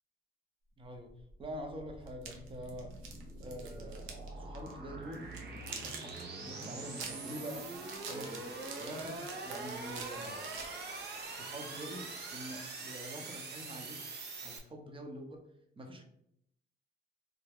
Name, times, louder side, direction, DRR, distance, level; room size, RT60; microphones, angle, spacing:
voice 1, 0.8-1.1 1.4-2.9 3.4-7.6 8.1-8.5 8.8-10.6 11.4-14.0 14.4-15.4 15.8-16.0, equal, 25° right, 3 dB, 0.7 m, -46 dB
sound 1, 1.1-14.6, right 3 dB, 55° right, 0.8 m, -44 dB
sound 2, 2.1-4.3 4.5-4.7 5.1-11.2, right 5 dB, 90° right, 0.6 m, -46 dB
3.4 x 2.2 x 3.4 m, 0.74 s
cardioid pair, 90°, 20 cm